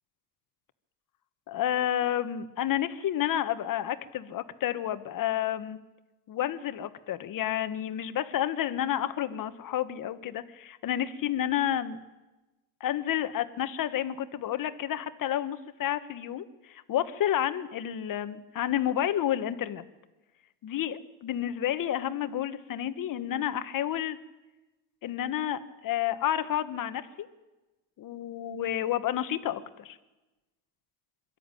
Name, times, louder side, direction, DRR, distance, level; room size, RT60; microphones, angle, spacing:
voice 1, 1.5-5.8 6.3-12.0 12.8-19.8 20.6-24.2 25.0-27.3 28.0-30.0, left 11 dB, 45° left, 11 dB, 1.5 m, -30 dB
22.5 x 13.0 x 9.1 m, 1.1 s
supercardioid pair, 90°, 46 cm